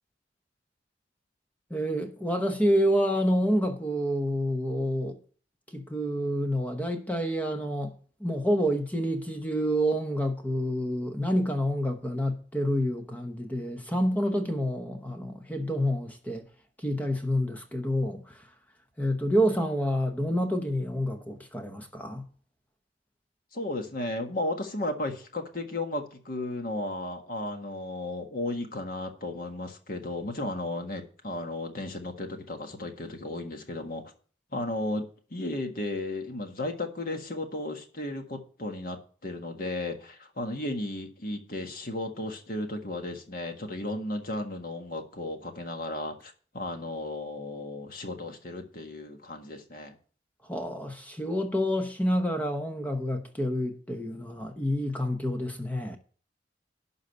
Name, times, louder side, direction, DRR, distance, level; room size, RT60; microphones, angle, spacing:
voice 1, 1.7-5.2 5.7-7.9 8.2-16.4 16.8-18.4 19.0-22.2 50.5-56.0, equal, 10° left, 0.9 m, -28 dB
voice 2, 23.5-34.0 34.5-50.0, left 2 dB, 50° left, 1.6 m, -34 dB
12.0 x 4.0 x 7.9 m
head